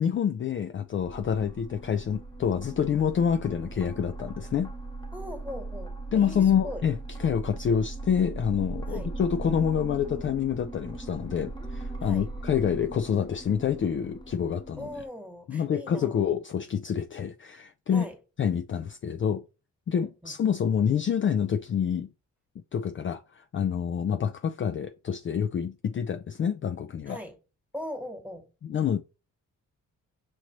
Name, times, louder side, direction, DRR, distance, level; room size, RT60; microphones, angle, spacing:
voice 1, 0.0-4.7 6.1-14.9 15.5-18.0 18.4-19.4 19.9-22.1 22.7-27.2 28.6-29.0, left 8 dB, 40° left, 0.4 m, -27 dB
sound 1, 1.0-15.1, right 2 dB, 15° left, 1.0 m, -39 dB
voice 2, 5.1-6.8 8.9-9.1 12.0-12.3 14.8-16.3 17.9-18.2 19.9-20.3 27.1-27.4 27.7-28.5, left 1 dB, 5° right, 1.4 m, -40 dB
5.9 x 2.6 x 3.0 m
cardioid pair, 55°, 33 cm